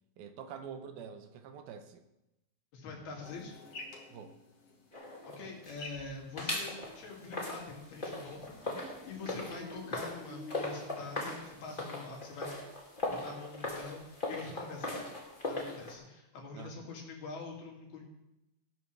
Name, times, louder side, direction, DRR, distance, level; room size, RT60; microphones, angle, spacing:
voice 1, 0.2-2.0 4.1-4.3 16.5-16.9, right 7 dB, 80° right, 8 dB, 2.7 m, -46 dB
voice 2, 2.7-3.5 5.2-12.5 13.2-15.1 15.5-18.0, left 4 dB, 85° left, -1 dB, 4.5 m, -45 dB
sound 1, 3.2-9.7, left 2 dB, 45° left, 2.4 m, -53 dB
sound 2, 4.9-6.0 6.4-15.9, left 2 dB, 20° left, 1.8 m, -39 dB
sound 3, 8.3-11.1 14.5-15.2, equal, 30° right, 1.6 m, -51 dB
17.0 x 12.5 x 3.4 m, 0.91 s
omnidirectional pair, 4.3 m